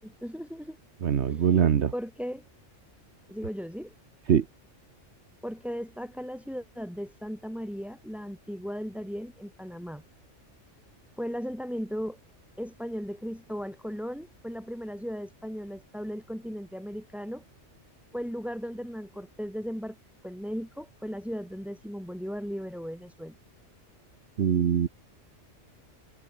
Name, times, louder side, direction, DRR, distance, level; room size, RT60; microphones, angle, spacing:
voice 1, 0.0-0.8 1.3-1.5 1.9-2.4 3.3-3.9 5.4-10.0 11.2-12.2 12.6-17.4 18.1-20.0 20.2-23.3, equal, ahead, 6.4 m, -36 dB
voice 2, 1.0-1.9 4.3-4.5 24.4-24.9, right 8 dB, 65° right, 1.2 m, -23 dB
omnidirectional pair, 1.2 m